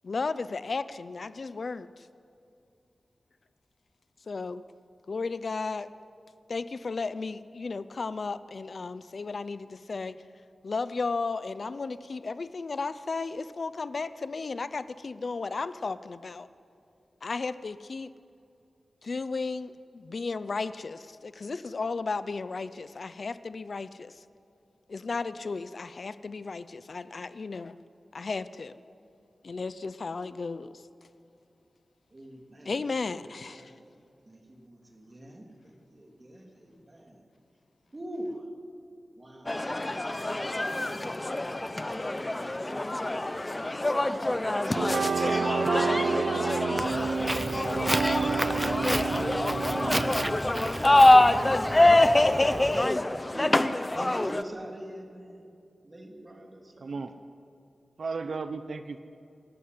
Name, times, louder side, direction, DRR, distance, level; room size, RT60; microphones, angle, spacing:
voice 1, 0.0-2.1 4.3-4.6 5.1-5.9 6.5-10.2 10.6-16.5 17.2-18.1 19.0-24.2 24.9-27.8 28.1-28.7 29.4-30.8 32.6-33.7, left 4 dB, 55° left, 14 dB, 0.6 m, -34 dB
voice 2, 32.1-32.7 33.0-33.8 34.3-37.2 37.9-38.4 39.2-39.6 40.0-41.4 42.0-43.3 43.6-46.2 49.8-50.2 50.7-51.9 53.3-53.6 53.9-55.5 55.8-57.1, right 1 dB, 30° right, 2 dB, 3.2 m, -45 dB
sound 1, 39.5-54.4, left 2 dB, 20° left, 0.7 m, -25 dB
sound 2, 44.8-50.4, right 5 dB, 90° right, 0.5 m, -30 dB
Walk footsteps, 46.8-52.9, right 1 dB, 10° right, 0.8 m, -33 dB
voice 3, 56.8-57.1 58.0-59.0, right 4 dB, 65° right, 10 dB, 0.8 m, -34 dB
27.0 x 14.5 x 9.6 m, 2.5 s
wide cardioid pair, 125°, 0 cm